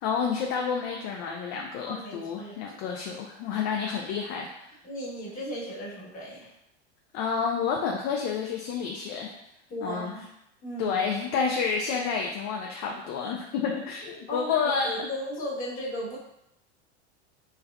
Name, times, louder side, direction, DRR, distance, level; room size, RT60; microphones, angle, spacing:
voice 1, 0.0-4.7 7.1-9.3 9.8-10.1 10.8-15.1, left 6 dB, 45° left, 0 dB, 0.4 m, -29 dB
voice 2, 1.8-2.6 4.8-6.5 9.7-10.3 10.6-11.0 14.0-16.2, equal, 25° left, -7 dB, 1.3 m, -36 dB
3.2 x 2.2 x 2.3 m, 0.82 s
hypercardioid pair, 95°, 36 cm